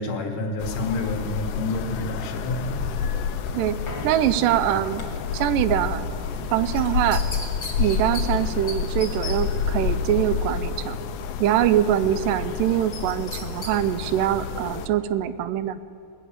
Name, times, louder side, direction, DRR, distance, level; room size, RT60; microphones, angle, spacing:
voice 1, 0.0-2.8, left 2 dB, 75° left, 3 dB, 2.9 m, -29 dB
sound 1, 0.6-14.9, left 6 dB, 90° left, 2.4 m, -29 dB
sound 2, 2.5-10.9 11.3-11.4 11.7-13.0 13.5-13.6, left 1 dB, 40° left, 1.6 m, -42 dB
voice 2, 4.0-5.0 5.3-6.1 6.5-7.2 7.8-11.0 11.4-15.8, right 12 dB, 85° right, 14 dB, 2.2 m, -23 dB
sound 3, 6.8-8.2 8.7-8.8 9.0-9.4 12.9-13.7 14.1-14.2, left 3 dB, 25° left, 1.3 m, -35 dB
19.5 x 6.6 x 8.5 m, 2.5 s
omnidirectional pair, 3.8 m